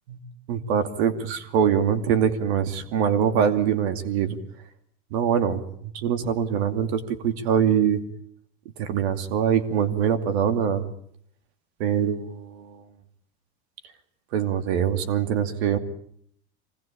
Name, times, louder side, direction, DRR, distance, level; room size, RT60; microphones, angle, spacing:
voice 1, 0.5-4.4 5.1-8.0 8.8-10.8 11.8-12.8 14.3-15.8, right 8 dB, 80° right, 8 dB, 2.7 m, -23 dB
25.5 x 19.0 x 8.6 m, 0.66 s
supercardioid pair, 135°, 32 cm